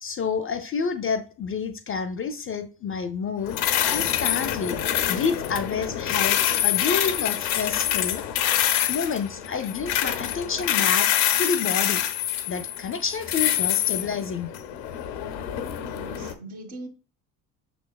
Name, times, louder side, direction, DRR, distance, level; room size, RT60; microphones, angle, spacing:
voice 1, 0.0-3.6 3.9-4.8 5.1-8.2 8.9-11.1 11.4-12.0 12.5-14.5, left 5 dB, 30° left, 0.4 m, -29 dB
sound 1, 3.5-16.3, left 11 dB, 90° left, 0.6 m, -25 dB
voice 2, 15.9-16.9, right 2 dB, 75° right, 1.5 m, -41 dB
5.9 x 3.4 x 2.2 m
hypercardioid pair, 65°, 50 cm